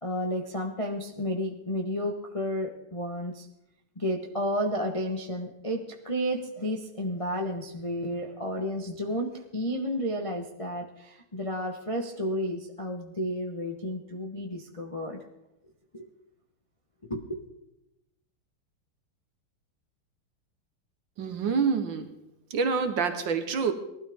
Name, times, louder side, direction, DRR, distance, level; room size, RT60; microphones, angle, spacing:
voice 1, 0.0-3.5 4.0-15.2 15.9-16.0 17.1-17.4, equal, 30° left, 0 dB, 0.6 m, -32 dB
voice 2, 21.2-22.1 22.5-23.7, right 5 dB, 65° right, 8 dB, 1.7 m, -27 dB
19.0 x 12.5 x 3.6 m, 0.88 s
omnidirectional pair, 2.4 m